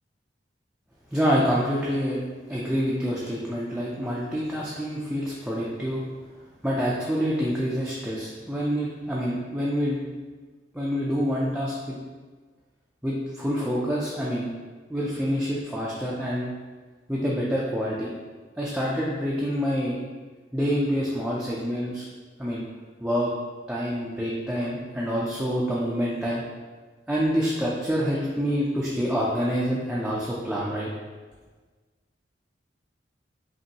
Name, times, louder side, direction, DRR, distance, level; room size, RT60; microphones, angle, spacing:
voice 1, 1.1-2.2 2.5-6.0 6.6-10.0 10.7-12.0 13.0-14.5 14.9-16.5 17.1-18.1 18.6-20.0 20.5-22.0 22.4-22.6 23.0-23.3 23.7-26.4 27.1-30.9, equal, 5° right, -6 dB, 0.4 m, -27 dB
5.2 x 2.6 x 2.8 m, 1.4 s
head